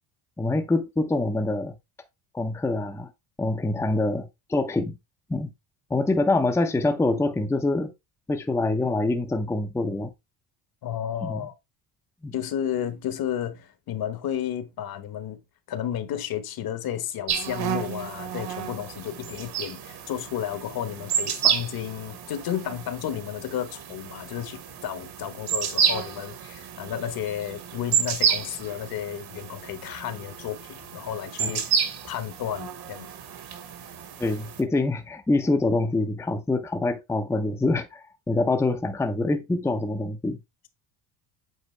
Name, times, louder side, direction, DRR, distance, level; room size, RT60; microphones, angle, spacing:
voice 1, 0.4-1.7 2.3-3.1 3.4-5.0 5.3-5.5 5.9-7.9 8.3-10.1 11.2-11.4 12.2-12.3 31.4-31.5 34.2-40.4, left 2 dB, 5° left, 0.6 m, -25 dB
voice 2, 10.8-11.5 12.3-15.4 15.7-31.6 32.0-33.1, left 10 dB, 50° left, 1.1 m, -32 dB
sound 1, 17.3-34.6, right 8 dB, 55° right, 1.6 m, -30 dB
8.2 x 4.1 x 3.2 m
cardioid pair, 140°, 46 cm